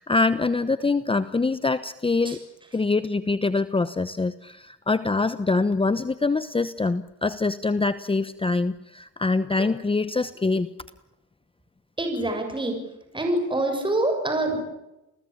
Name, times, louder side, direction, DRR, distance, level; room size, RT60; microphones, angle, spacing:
voice 1, 0.0-2.4 2.7-10.7, left 3 dB, 20° left, 13 dB, 1.0 m, -24 dB
voice 2, 12.0-12.8 13.1-14.6, right 1 dB, 15° right, 4 dB, 7.2 m, -25 dB
30.0 x 19.5 x 8.8 m, 0.95 s
cardioid pair, 90°, 30 cm